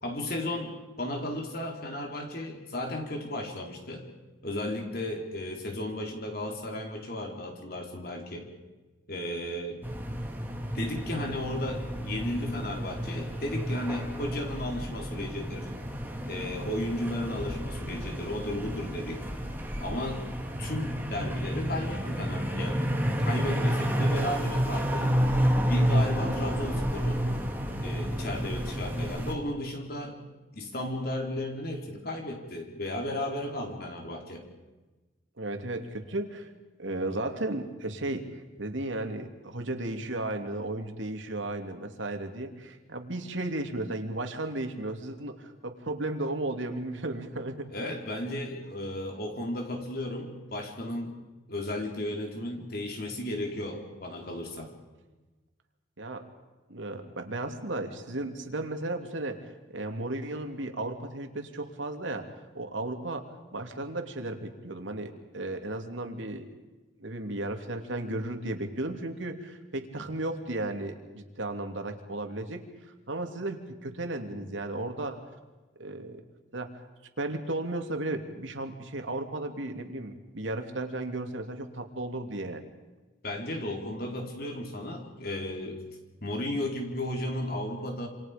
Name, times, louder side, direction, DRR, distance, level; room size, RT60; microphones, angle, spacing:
voice 1, 0.0-4.1 4.4-8.5 9.1-9.9 10.7-15.7 16.3-19.3 19.8-22.8 23.2-25.1 25.7-27.2 27.8-30.2 30.5-34.4 47.7-51.2 51.5-54.7 83.2-85.8 86.2-88.1, left 1 dB, 55° left, 2 dB, 4.1 m, -34 dB
sound 1, 9.8-29.3, equal, 10° right, 2.3 m, -30 dB
voice 2, 35.4-36.5 36.8-47.7 56.0-56.2 56.7-62.3 62.5-66.5 67.0-72.6 73.1-75.3 75.8-76.2 76.5-76.8 77.2-82.6, right 2 dB, 85° right, 5 dB, 2.6 m, -34 dB
28.0 x 27.0 x 5.2 m, 1.2 s
head